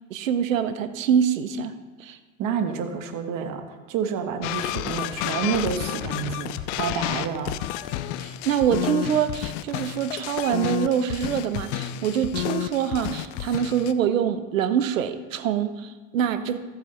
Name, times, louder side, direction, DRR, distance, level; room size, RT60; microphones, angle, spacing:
voice 1, 0.1-1.7 2.0-2.2 8.2-16.6, right 8 dB, 90° right, 11 dB, 0.8 m, -25 dB
voice 2, 2.4-7.6, right 7 dB, 50° right, 7 dB, 1.4 m, -29 dB
sound 1, 4.4-13.9, left 14 dB, 65° left, 0.7 m, -31 dB
14.5 x 8.2 x 3.3 m, 1.2 s
hypercardioid pair, 80°, 39 cm